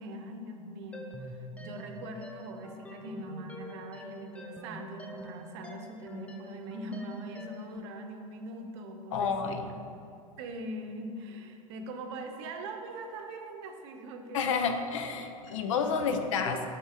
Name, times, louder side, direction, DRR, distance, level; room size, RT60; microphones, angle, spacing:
voice 1, 0.0-9.6 10.4-14.4 15.5-15.6 16.1-16.6, right 1 dB, 55° right, 4 dB, 0.7 m, -42 dB
sound 1, 0.9-7.8, left 1 dB, 5° left, 0.4 m, -46 dB
voice 2, 9.1-9.7 14.3-16.6, left 5 dB, 60° left, 6 dB, 0.6 m, -30 dB
5.4 x 4.3 x 4.6 m, 2.5 s
figure-of-eight pair, 80°, 18 cm